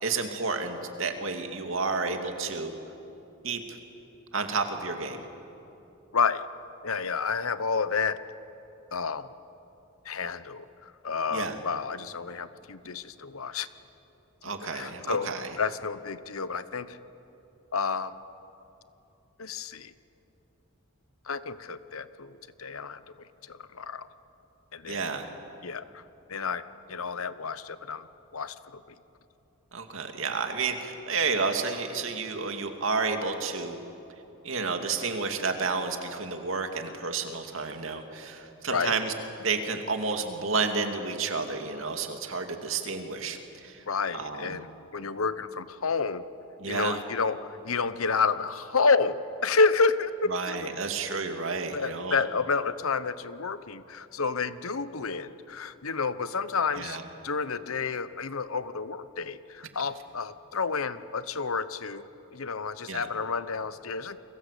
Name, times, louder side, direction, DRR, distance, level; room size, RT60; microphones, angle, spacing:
voice 1, 0.0-2.7 3.4-3.8 4.3-5.3 11.3-11.6 14.4-15.5 24.9-25.3 29.7-33.8 34.4-39.1 39.4-43.4 43.6-43.8 44.1-44.6 46.6-47.0 50.3-52.2 56.8-57.0 62.9-63.1, right 4 dB, 65° right, 5 dB, 2.5 m, -31 dB
voice 2, 6.8-8.2 8.9-9.3 10.0-13.7 14.7-15.3 15.6-17.0 17.7-18.1 19.4-19.9 21.3-23.0 23.5-24.1 24.7-25.0 25.6-26.0 26.3-26.6 26.9-28.1 28.3-28.8 38.7-39.0 43.9-44.7 44.9-46.2 46.7-50.7 51.7-64.2, left 4 dB, 80° left, 14 dB, 1.0 m, -30 dB
29.5 x 22.5 x 8.4 m, 3.0 s
head